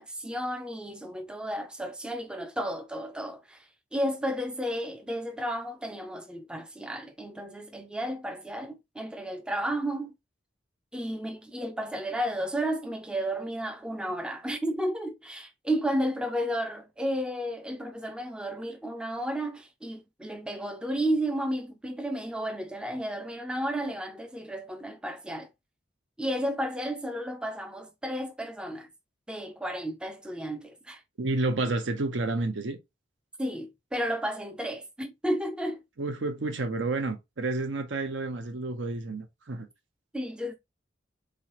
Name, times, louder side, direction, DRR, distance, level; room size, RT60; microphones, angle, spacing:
voice 1, 0.0-10.1 10.9-25.5 26.2-28.9 29.3-31.0 33.4-35.8 40.1-40.5, equal, 5° right, 0.4 m, -32 dB
voice 2, 31.2-32.8 36.0-39.7, right 2 dB, 75° right, 0.7 m, -30 dB
3.8 x 3.1 x 2.9 m
head